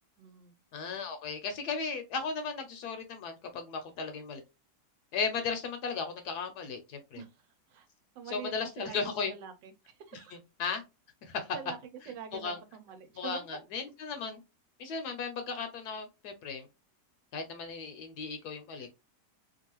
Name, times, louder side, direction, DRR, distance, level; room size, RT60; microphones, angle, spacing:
voice 1, 0.2-0.5 7.1-7.3 7.7-7.9 8.1-10.3 11.5-11.8 12.1-13.4, right 7 dB, 90° right, 1.3 m, -45 dB
voice 2, 0.7-4.4 5.1-7.2 8.3-9.3 10.6-10.8 11.2-11.6 12.3-12.6 13.2-14.4 14.8-16.7 17.3-18.9, left 5 dB, 70° left, 1.1 m, -36 dB
2.9 x 2.4 x 2.9 m
omnidirectional pair, 1.9 m